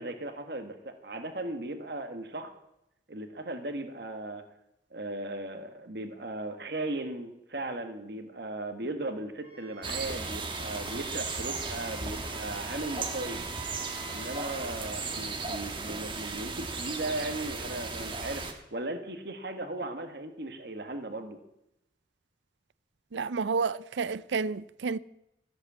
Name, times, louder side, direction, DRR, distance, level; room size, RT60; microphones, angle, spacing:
voice 1, 0.0-2.5 3.1-4.4 4.9-13.4 14.1-21.4, right 2 dB, 65° right, 1.5 m, -37 dB
Wind instrument woodwind instrument, 9.4-14.7, right 3 dB, 10° right, 2.6 m, -49 dB
sound 1, 9.8-18.5, right 4 dB, 25° right, 1.3 m, -36 dB
voice 2, 23.1-25.0, right 5 dB, 85° right, 0.5 m, -30 dB
14.0 x 8.1 x 7.4 m
head